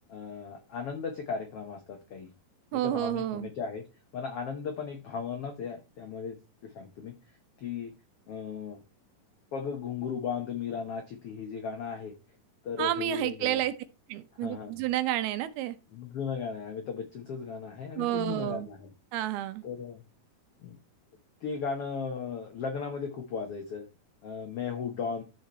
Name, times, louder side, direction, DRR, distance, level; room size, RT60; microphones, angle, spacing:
voice 1, 0.1-2.3 2.7-3.8 4.1-7.1 7.6-7.9 8.3-8.8 9.5-12.1 12.6-13.6 14.4-14.7 15.9-18.9 19.6-20.0 20.6-20.8 21.4-23.9 24.2-25.2, left 6 dB, 80° left, 1.3 m, -36 dB
voice 2, 2.7-3.5 12.8-13.8 14.1-15.8 18.0-18.7 19.1-19.6, right 13 dB, 80° right, 2.8 m, -30 dB
13.5 x 4.6 x 4.3 m
omnidirectional pair, 4.5 m